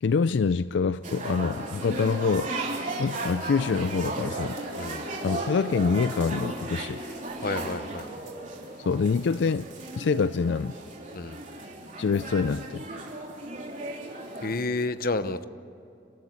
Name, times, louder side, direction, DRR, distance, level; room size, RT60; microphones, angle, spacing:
voice 1, 0.0-2.5 3.0-4.6 5.2-7.0 8.9-9.7 10.0-10.8 12.0-12.8, left 5 dB, 75° left, 15 dB, 0.4 m, -25 dB
sound 1, 1.0-14.6, right 2 dB, 45° right, 3.5 m, -35 dB
voice 2, 7.4-8.1 11.1-11.4 14.4-15.4, left 3 dB, 50° left, 12 dB, 0.9 m, -30 dB
29.0 x 13.5 x 8.2 m, 2.8 s
head